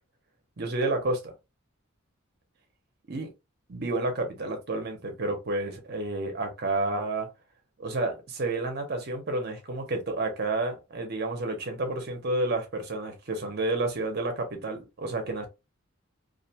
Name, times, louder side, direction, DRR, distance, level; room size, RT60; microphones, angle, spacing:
voice 1, 0.6-1.3 3.1-3.3 3.7-7.3 7.8-15.5, right 2 dB, 50° right, 0.7 m, -30 dB
2.4 x 2.2 x 2.7 m
head